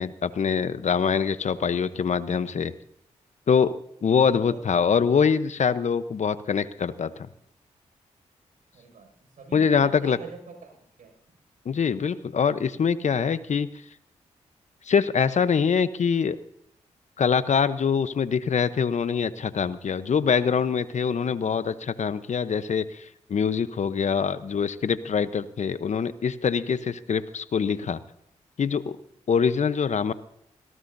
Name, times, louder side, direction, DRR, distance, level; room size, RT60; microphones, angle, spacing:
voice 1, 0.0-2.7 3.5-3.7 4.0-7.1 9.5-10.2 11.7-13.7 14.9-16.4 17.2-28.0 28.6-29.0 29.3-30.1, left 6 dB, 60° left, 13 dB, 0.9 m, -24 dB
voice 2, 4.3-4.8 8.7-11.4, right 5 dB, 75° right, 3 dB, 6.2 m, -46 dB
20.0 x 18.0 x 2.7 m, 0.74 s
supercardioid pair, 40°, 14 cm